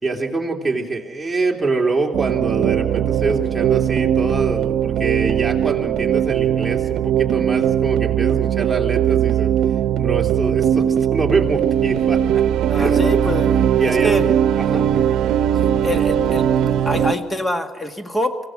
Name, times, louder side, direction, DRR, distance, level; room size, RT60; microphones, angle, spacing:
voice 1, 0.0-9.5 10.0-12.4 12.7-13.0 13.8-14.9, right 3 dB, 10° right, -1 dB, 3.3 m, -25 dB
sound 1, 2.1-17.1, right 9 dB, 80° right, 0.7 m, -19 dB
voice 2, 12.7-14.3 15.8-18.4, left 1 dB, 20° left, 7 dB, 1.9 m, -25 dB
25.5 x 16.5 x 6.3 m, 1.2 s
cardioid pair, 90°, 0 cm